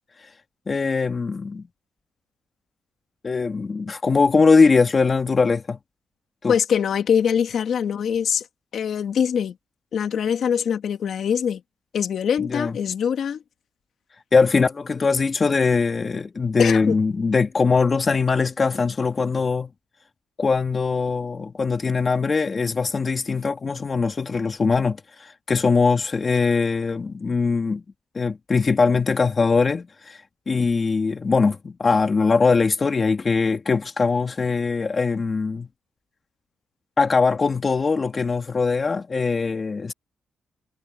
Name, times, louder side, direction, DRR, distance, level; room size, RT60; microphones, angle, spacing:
voice 1, 0.7-1.7 3.2-5.8 6.4-6.5 12.4-12.8 14.3-19.7 20.4-27.8 28.1-35.7 37.0-39.9, left 4 dB, 30° left, 2.4 m, -21 dB
voice 2, 6.5-8.5 8.7-9.6 9.9-11.6 11.9-13.4 16.6-17.0, left 8 dB, 60° left, 2.0 m, -23 dB
cardioid pair, 125°, 0 cm